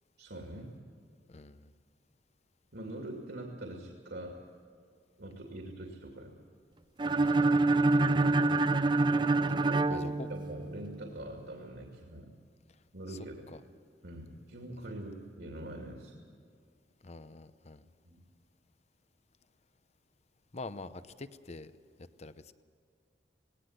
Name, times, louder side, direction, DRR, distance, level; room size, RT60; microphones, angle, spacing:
voice 1, 0.2-0.7 2.7-4.4 5.2-6.3 9.6-12.3 12.9-13.5 14.0-16.2 18.0-18.2, right 1 dB, 70° right, 1 dB, 2.5 m, -43 dB
voice 2, 1.3-1.7 7.2-7.6 9.9-10.3 13.1-13.2 13.5-13.6 17.0-17.8 20.5-21.7 22.2-22.5, left 3 dB, 40° left, 13 dB, 0.8 m, -45 dB
sound 1, 7.0-10.9, right 2 dB, 25° right, 0.4 m, -26 dB
19.0 x 18.0 x 8.1 m, 2.2 s
head